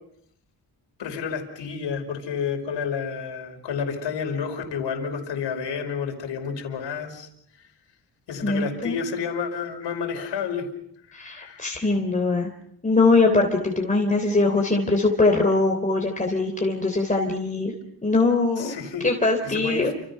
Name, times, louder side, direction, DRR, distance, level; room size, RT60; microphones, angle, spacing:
voice 1, 1.0-7.3 7.6-7.7 8.3-10.7 11.1-11.7 18.6-19.1 19.4-19.9, left 6 dB, 85° left, 4 dB, 5.3 m, -30 dB
voice 2, 8.4-9.0 11.1-12.5 12.8-17.7 18.0-18.8 19.0-19.9, left 3 dB, 20° left, 2 dB, 3.5 m, -22 dB
30.0 x 27.5 x 5.7 m, 0.72 s
cardioid pair, 100°, 42 cm